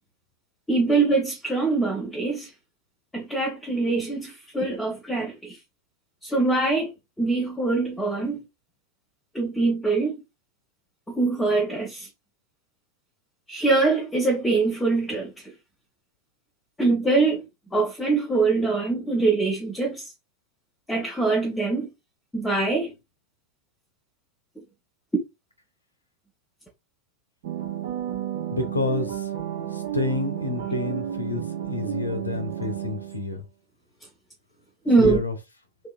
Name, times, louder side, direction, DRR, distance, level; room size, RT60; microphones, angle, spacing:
voice 1, 0.7-2.5 3.1-5.6 6.2-8.4 9.3-10.2 11.1-12.1 13.5-15.3 16.8-17.4 17.7-20.0 20.9-21.9 22.3-22.9 34.8-35.2, right 3 dB, 10° left, 0.9 m, -23 dB
sound 1, 27.4-33.3, right 11 dB, 55° right, 0.7 m, -32 dB
voice 2, 28.5-29.3 29.7-33.4 35.0-35.3, left 2 dB, 80° left, 0.6 m, -29 dB
3.1 x 2.8 x 2.3 m
figure-of-eight pair, 90°, 0 cm